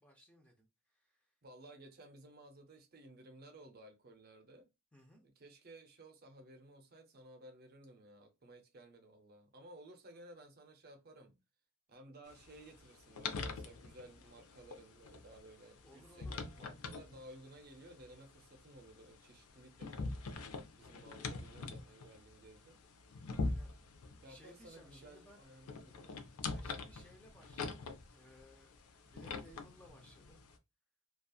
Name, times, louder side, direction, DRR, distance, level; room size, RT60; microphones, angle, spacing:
voice 1, 0.0-1.3 4.9-5.2 15.8-16.4 23.3-23.8 24.3-25.4 26.4-28.8 29.0-30.4, equal, 5° left, 0.5 m, -61 dB
voice 2, 1.4-4.7 5.2-11.4 11.9-20.1 20.8-22.8 24.2-26.2, right 1 dB, 45° right, 0.6 m, -57 dB
sound 1, 12.3-30.6, left 3 dB, 85° left, 0.5 m, -45 dB
2.8 x 2.3 x 2.3 m
head